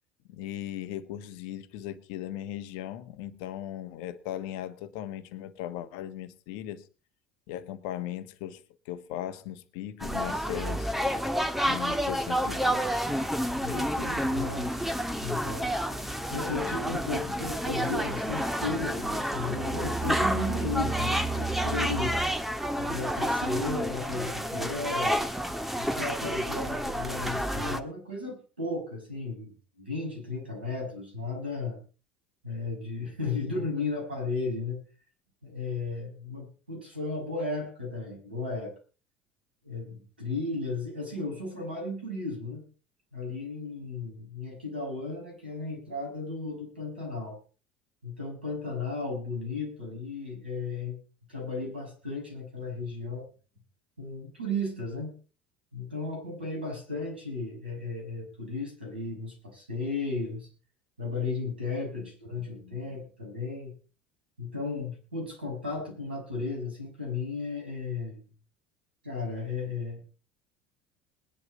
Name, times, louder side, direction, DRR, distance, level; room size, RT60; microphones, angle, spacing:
voice 1, 0.3-6.9 7.5-10.9 11.7-12.9 62.0-62.1 62.4-62.9, left 12 dB, 65° left, 1.3 m, -38 dB
sound 1, 10.0-27.8, equal, 5° right, 1.6 m, -29 dB
voice 2, 13.6-15.7 16.3-22.2 22.8-25.2 25.8-29.5 29.8-31.8 32.4-34.8 35.4-38.7 39.6-42.6 43.1-47.4 48.0-50.9 51.3-53.3 54.0-55.1 55.7-60.5 61.0-63.7 64.4-68.2 69.0-70.1, left 3 dB, 90° right, 6.3 m, -34 dB
20.5 x 11.0 x 4.0 m
hypercardioid pair, 65°, 5 cm